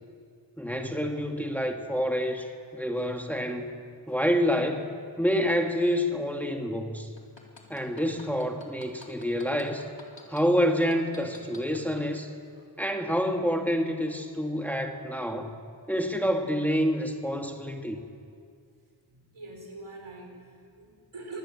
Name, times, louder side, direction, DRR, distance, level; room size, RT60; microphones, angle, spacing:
voice 1, 0.6-3.7 4.1-7.1 7.7-9.9 10.3-12.3 12.8-15.6 15.9-18.0, equal, 5° left, 3 dB, 2.0 m, -28 dB
sound 1, 7.2-10.4 10.9-12.1 12.5-12.6, left 3 dB, 65° left, 3.8 m, -48 dB
voice 2, 19.1-21.4, right 3 dB, 80° right, 1 dB, 5.3 m, -44 dB
26.0 x 19.5 x 7.6 m, 2.2 s
wide cardioid pair, 45°, 48 cm